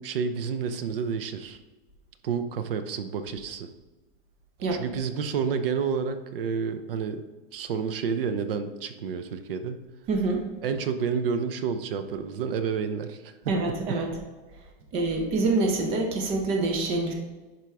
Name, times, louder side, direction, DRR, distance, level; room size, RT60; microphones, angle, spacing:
voice 1, 0.0-1.6 2.2-3.7 4.7-7.3 7.5-9.9 10.6-14.1, right 6 dB, 65° right, 10 dB, 0.7 m, -30 dB
voice 2, 10.1-10.4 13.5-14.1 14.9-17.1, right 3 dB, 20° right, 2 dB, 0.6 m, -26 dB
11.0 x 4.5 x 3.5 m, 1.2 s
supercardioid pair, 180°, 30 cm